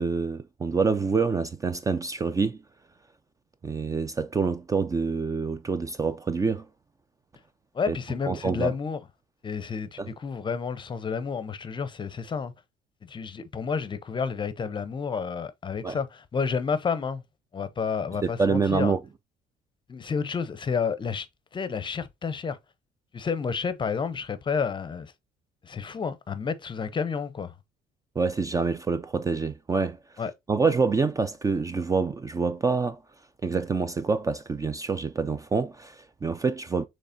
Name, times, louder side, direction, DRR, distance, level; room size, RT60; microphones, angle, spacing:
voice 1, 0.0-2.6 3.6-6.7 7.9-8.0 8.3-8.7 10.0-10.1 15.8-16.0 18.2-19.0 28.2-30.0 30.5-33.0 33.4-36.9, right 4 dB, 20° right, 0.4 m, -26 dB
voice 2, 7.7-9.0 9.4-12.5 13.0-17.2 17.5-18.9 19.9-21.3 21.5-22.6 23.1-25.1 25.6-27.5 30.2-30.3, left 5 dB, 30° left, 0.6 m, -30 dB
6.5 x 3.1 x 2.6 m
cardioid pair, 110°, 17 cm